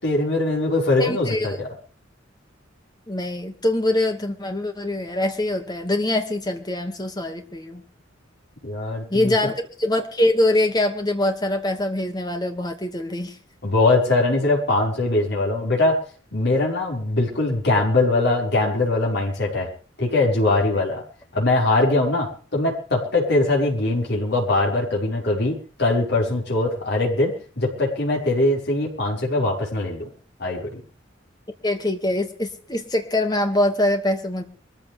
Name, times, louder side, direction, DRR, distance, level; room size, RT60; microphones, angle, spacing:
voice 1, 0.0-1.7 8.6-9.3 13.6-16.0 16.3-19.7 20.0-21.0 21.3-30.1 30.4-30.8, left 2 dB, 60° left, -2 dB, 5.7 m, -21 dB
voice 2, 1.0-1.6 3.1-7.8 9.1-9.5 9.8-13.4 31.6-34.4, left 1 dB, 20° left, 5 dB, 2.3 m, -23 dB
23.5 x 14.5 x 3.6 m, 0.40 s
head